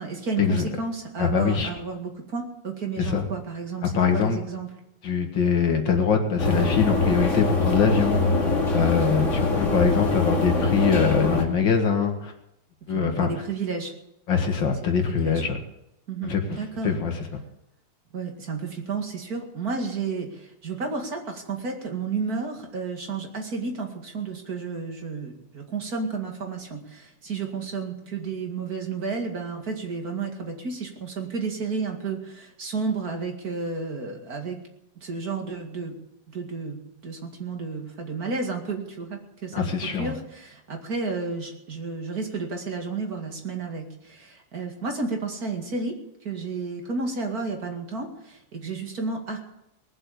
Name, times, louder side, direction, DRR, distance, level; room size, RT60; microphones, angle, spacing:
voice 1, 0.0-4.7 9.4-9.5 12.9-13.9 15.1-15.4 16.1-16.9 18.1-34.6 35.0-36.0 36.3-46.0 46.2-49.4, right 4 dB, 55° right, 2 dB, 2.7 m, -32 dB
voice 2, 1.2-1.7 3.0-3.3 3.8-4.4 5.0-8.2 8.7-12.3 12.9-13.3 14.3-15.6 16.2-16.6 16.8-17.4 39.5-40.1, left 6 dB, 85° left, 4 dB, 2.6 m, -23 dB
sound 1, 6.4-11.4, left 3 dB, 40° left, 2.6 m, -23 dB
19.5 x 7.7 x 8.4 m, 0.82 s
omnidirectional pair, 2.0 m